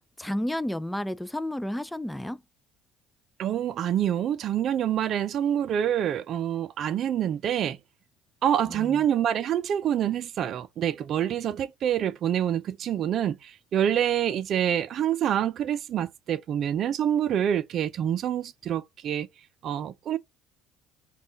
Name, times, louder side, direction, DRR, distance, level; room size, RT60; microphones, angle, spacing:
voice 1, 0.2-2.4 8.6-9.0, left 1 dB, 5° left, 0.4 m, -31 dB
voice 2, 3.4-7.8 8.4-19.3 19.6-20.2, right 10 dB, 55° right, 0.5 m, -26 dB
5.4 x 2.4 x 3.5 m
hypercardioid pair, 65°, 0 cm